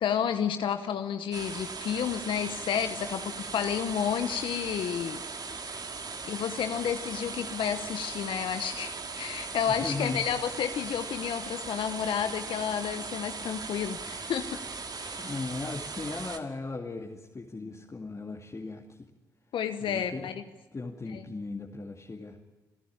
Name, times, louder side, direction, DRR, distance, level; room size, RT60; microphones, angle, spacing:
voice 1, 0.0-5.2 6.3-14.5 14.9-15.3 19.5-20.3 21.1-21.2, left 8 dB, 70° left, 9 dB, 1.0 m, -31 dB
sound 1, 1.3-16.4, right 4 dB, 50° right, 2.3 m, -39 dB
voice 2, 9.5-10.3 15.2-19.1 19.8-20.3 20.7-22.4, left 3 dB, 35° left, 0 dB, 2.3 m, -37 dB
29.5 x 11.5 x 8.8 m, 1.3 s
hypercardioid pair, 40°, 9 cm